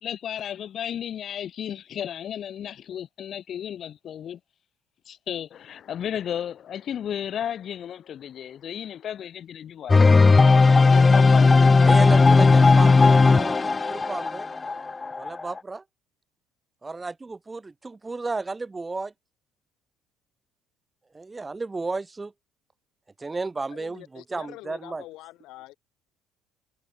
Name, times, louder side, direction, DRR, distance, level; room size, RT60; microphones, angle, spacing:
voice 1, 0.0-4.4 5.1-10.0 10.9-11.6, left 9 dB, 55° left, 1.9 m, -33 dB
sound 1, 9.9-15.6, left 4 dB, 25° left, 0.4 m, -16 dB
voice 2, 11.8-14.5 15.2-15.8 16.8-19.1 21.1-22.3 23.2-25.1, right 3 dB, 20° right, 1.0 m, -33 dB
voice 3, 23.7-25.8, left 18 dB, 70° left, 5.4 m, -45 dB
hypercardioid pair, 70°, 0 cm